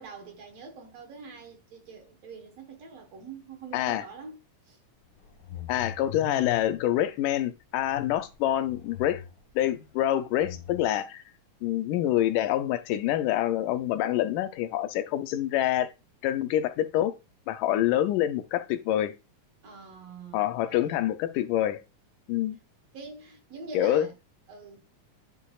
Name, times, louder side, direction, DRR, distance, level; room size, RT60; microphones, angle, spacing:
voice 1, 0.0-4.4 4.7-4.8 19.6-21.1 22.9-24.1 24.5-24.8, right 4 dB, 60° right, 2.0 m, -45 dB
voice 2, 3.7-4.0 5.7-9.2 9.6-11.2 11.6-15.9 16.2-17.1 17.5-19.1 20.3-21.8 22.3-22.6 23.7-24.1, left 12 dB, 80° left, 2.1 m, -26 dB
sound 1, 5.1-6.9 7.8-9.5 10.4-10.8, left 10 dB, 45° left, 1.7 m, -41 dB
10.5 x 5.3 x 2.3 m
omnidirectional pair, 3.8 m